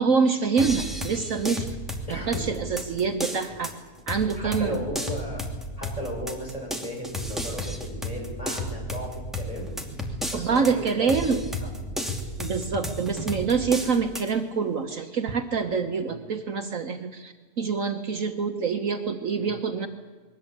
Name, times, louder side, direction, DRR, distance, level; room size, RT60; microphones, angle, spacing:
voice 1, 0.0-1.8 2.1-3.7 4.1-4.8 10.3-11.4 12.4-19.9, right 5 dB, 60° right, 6 dB, 1.4 m, -26 dB
sound 1, 0.6-14.3, equal, ahead, 2.6 m, -33 dB
voice 2, 2.1-2.4 4.4-5.4 5.8-9.8 10.3-12.0 16.0-16.2 19.3-19.5, equal, 20° left, 0 dB, 6.1 m, -36 dB
22.0 x 18.0 x 8.7 m, 1.4 s
omnidirectional pair, 1.7 m